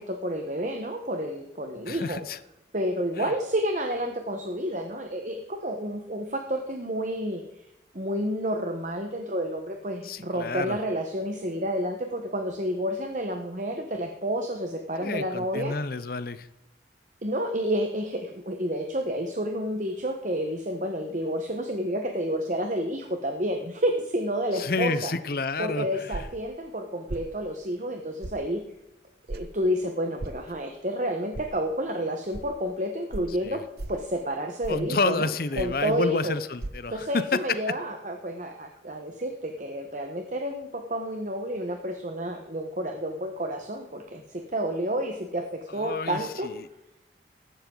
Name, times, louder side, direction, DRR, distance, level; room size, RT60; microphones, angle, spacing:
voice 1, 0.0-2.2 2.7-7.6 7.9-15.7 17.2-25.1 25.6-28.6 29.3-33.6 33.9-35.3 35.6-36.4 36.9-46.5, equal, 40° right, 5 dB, 1.2 m, -30 dB
voice 2, 1.9-2.4 3.2-3.3 10.0-10.8 15.0-16.5 24.5-26.2 33.4-33.6 34.7-37.1 45.7-46.7, left 3 dB, 50° left, 14 dB, 0.7 m, -30 dB
sound 1, 26.1-26.4 27.1-27.3 28.2-28.4 29.3-29.5 30.2-30.4 31.3-31.5 32.3-32.4 33.1-33.3 33.8-34.0 34.6-34.9 35.6-35.8 36.6-36.7, right 2 dB, 60° right, 0.8 m, -35 dB
15.0 x 12.0 x 3.9 m, 0.88 s
head